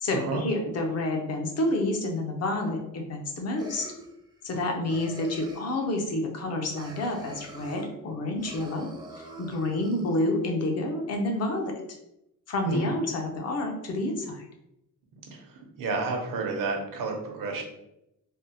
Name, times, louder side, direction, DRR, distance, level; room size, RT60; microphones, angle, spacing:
voice 1, 0.0-3.9 4.4-8.9 9.1-11.7 12.5-14.5, left 2 dB, 50° left, 2 dB, 0.6 m, -29 dB
sound 1, 3.6-4.6 4.9-5.8 6.7-7.9 8.3-10.2, right 1 dB, 15° right, 0.5 m, -45 dB
voice 2, 15.8-17.6, right 3 dB, 75° right, 2 dB, 0.7 m, -30 dB
3.5 x 2.0 x 2.7 m, 0.85 s
cardioid pair, 155°, 33 cm